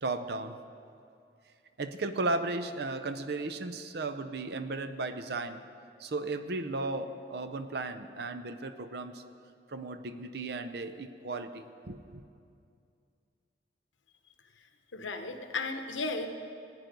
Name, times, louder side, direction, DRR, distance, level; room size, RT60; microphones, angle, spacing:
voice 1, 0.0-0.6 1.8-5.6 6.0-9.2 9.7-12.2, right 3 dB, 60° right, 10 dB, 0.6 m, -35 dB
voice 2, 14.9-16.3, left 3 dB, 90° left, 6 dB, 0.9 m, -34 dB
14.5 x 9.3 x 5.2 m, 2.5 s
head